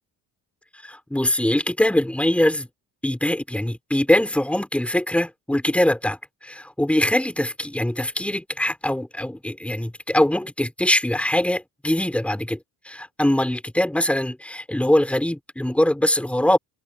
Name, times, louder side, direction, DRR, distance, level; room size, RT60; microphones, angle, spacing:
voice 1, 0.8-2.7 3.0-12.6 12.8-16.6, left 1 dB, 5° left, 6.8 m, -22 dB
cardioid pair, 160°, 37 cm